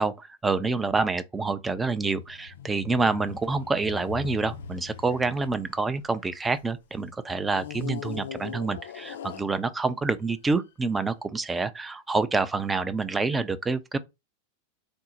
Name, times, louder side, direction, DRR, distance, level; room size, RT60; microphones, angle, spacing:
voice 1, 0.0-14.0, right 3 dB, 10° right, 0.4 m, -27 dB
sound 1, 2.0-6.7 7.5-10.0 10.7-10.8, left 9 dB, 60° left, 0.4 m, -41 dB
4.3 x 2.0 x 4.0 m
figure-of-eight pair, 90°, 0 cm